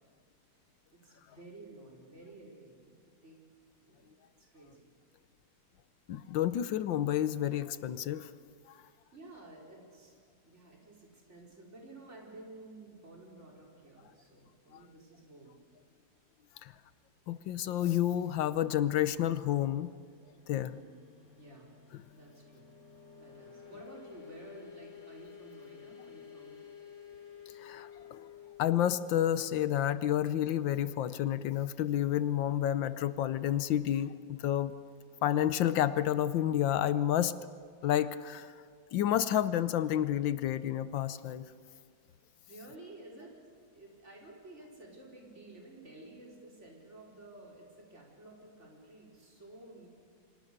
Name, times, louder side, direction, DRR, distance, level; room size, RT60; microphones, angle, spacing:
voice 1, 0.9-3.4 3.8-4.1 4.4-4.8 9.1-15.6 20.5-21.0 21.4-21.7 22.1-22.7 23.1-26.6 42.4-43.3 43.7-49.9, right 2 dB, 35° right, -1 dB, 4.9 m, -52 dB
voice 2, 6.1-8.3 16.6-16.7 17.3-19.9 20.5-20.7 27.6-28.2 28.6-34.7 35.2-37.3 37.8-38.5 38.9-41.5, left 11 dB, 85° left, 14 dB, 1.6 m, -30 dB
sound 1, 19.1-31.4, left 8 dB, 55° left, 4.7 m, -54 dB
30.0 x 25.0 x 6.7 m, 2.1 s
omnidirectional pair, 2.0 m